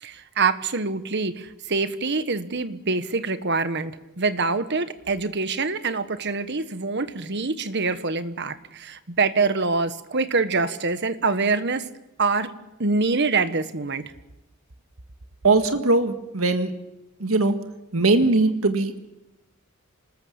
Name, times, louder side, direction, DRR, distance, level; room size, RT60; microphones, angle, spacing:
voice 1, 0.0-11.9 12.2-12.5 12.8-14.0, right 4 dB, 55° right, 11 dB, 1.4 m, -25 dB
voice 2, 15.4-16.7 17.2-17.6 17.9-19.1, right 3 dB, 80° right, 6 dB, 1.8 m, -20 dB
27.0 x 20.0 x 7.3 m, 0.95 s
head